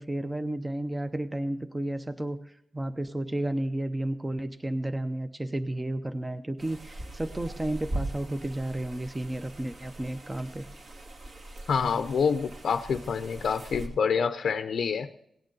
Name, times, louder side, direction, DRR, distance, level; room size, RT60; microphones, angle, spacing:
voice 1, 0.0-10.7, right 1 dB, 10° right, 9 dB, 0.6 m, -32 dB
sound 1, 6.6-13.9, right 1 dB, 55° right, 2.5 m, -40 dB
voice 2, 11.7-15.1, left 6 dB, 80° left, 9 dB, 0.6 m, -27 dB
18.0 x 9.0 x 3.9 m, 0.74 s
wide cardioid pair, 160°, 0 cm